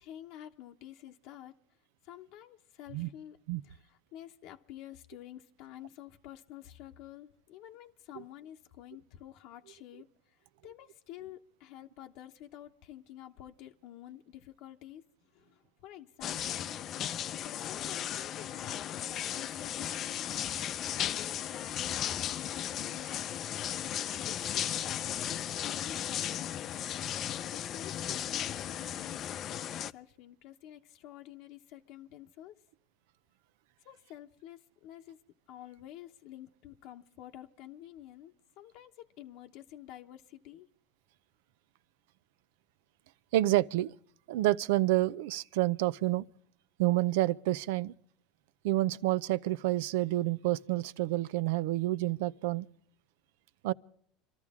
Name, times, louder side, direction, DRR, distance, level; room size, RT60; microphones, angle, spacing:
voice 1, 0.0-1.6 2.0-3.4 3.6-16.8 17.3-23.4 24.3-26.7 27.5-32.6 33.8-35.2 35.5-40.7, left 12 dB, 65° left, 1.0 m, -50 dB
sound 1, 16.2-29.9, left 10 dB, 45° left, 0.5 m, -36 dB
voice 2, 43.3-43.9 44.3-46.2 46.8-47.9 48.6-52.7 53.6-53.7, right 16 dB, 80° right, 0.5 m, -28 dB
25.5 x 13.5 x 3.6 m
supercardioid pair, 115°, 0 cm